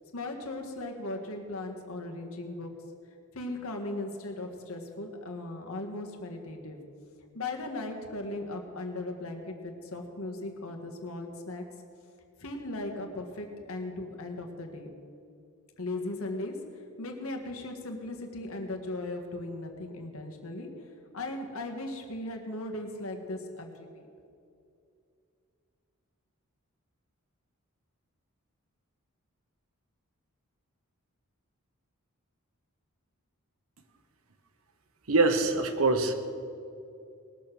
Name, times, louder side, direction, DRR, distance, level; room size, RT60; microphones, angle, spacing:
voice 1, 0.1-2.7 3.3-6.8 7.3-11.6 12.4-14.9 15.8-20.7 21.1-24.1, left 2 dB, 75° left, 3 dB, 1.6 m, -37 dB
voice 2, 35.1-36.1, right 3 dB, 70° right, 8 dB, 1.2 m, -24 dB
19.5 x 7.0 x 6.1 m, 2.5 s
head